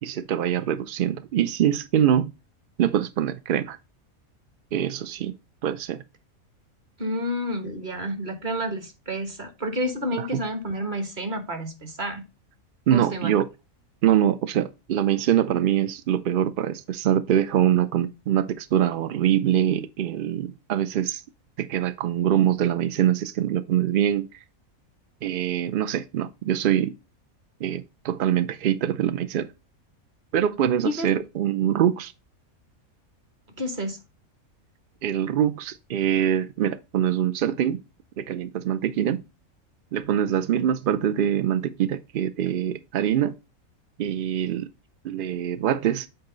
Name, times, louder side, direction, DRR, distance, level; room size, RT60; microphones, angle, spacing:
voice 1, 0.0-2.3 2.8-3.8 4.7-5.3 5.6-6.0 10.2-10.3 12.9-13.5 14.0-21.2 21.6-24.3 25.2-26.9 27.6-29.5 30.3-32.1 35.0-37.8 38.2-39.2 39.9-43.3 44.0-44.7 45.0-46.1, right 10 dB, 80° right, 0.4 m, -24 dB
voice 2, 7.0-12.2 12.9-13.3 30.8-31.1 33.6-34.0, equal, 35° right, 1.3 m, -30 dB
7.8 x 4.1 x 3.8 m
omnidirectional pair, 1.5 m